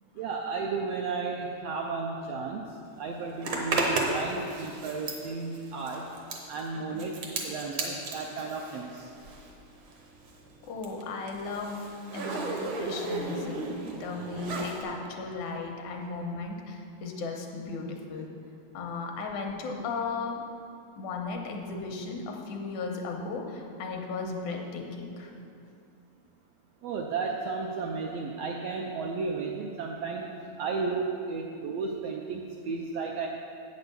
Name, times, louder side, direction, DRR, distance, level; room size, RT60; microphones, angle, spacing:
voice 1, 0.1-2.7 3.0-6.1 6.5-9.1 26.8-30.3 30.6-33.3, right 4 dB, 80° right, 0 dB, 1.4 m, -33 dB
Zipper (clothing), 3.4-9.6 9.9-14.8, right 2 dB, 60° right, 1.3 m, -34 dB
voice 2, 10.6-12.4 12.8-18.3 18.7-20.4 21.0-25.3, left 4 dB, 80° left, 2 dB, 2.3 m, -36 dB
8.6 x 6.4 x 6.7 m, 2.5 s
omnidirectional pair, 3.5 m